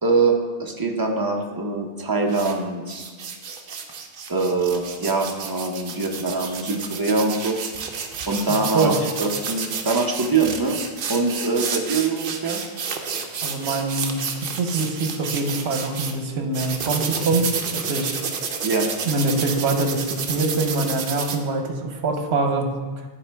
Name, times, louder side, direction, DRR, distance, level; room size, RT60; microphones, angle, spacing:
voice 1, 0.0-3.1 4.3-7.6 8.3-8.9 9.2-10.8 11.1-12.6 18.6-18.9, right 3 dB, 25° right, 1 dB, 0.6 m, -23 dB
sound 1, 2.3-2.5 2.9-16.1 16.5-21.4, right 6 dB, 60° right, 0.8 m, -30 dB
voice 2, 8.5-9.0 13.4-14.2 14.6-18.2 19.0-22.7, right 3 dB, 75° right, 4 dB, 1.1 m, -24 dB
10.0 x 4.3 x 3.4 m, 1.4 s
omnidirectional pair, 1.1 m